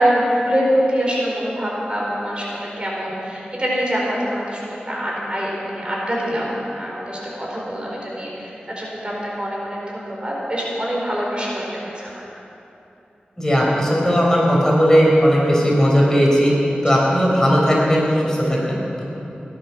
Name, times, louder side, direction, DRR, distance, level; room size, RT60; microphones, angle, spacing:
voice 1, 0.0-12.2 16.8-17.0, equal, 30° right, -4 dB, 4.5 m, -24 dB
voice 2, 13.4-16.5 16.8-19.0, equal, 15° left, -4 dB, 4.8 m, -17 dB
17.5 x 12.0 x 6.2 m, 2.8 s
wide cardioid pair, 50°, 3 cm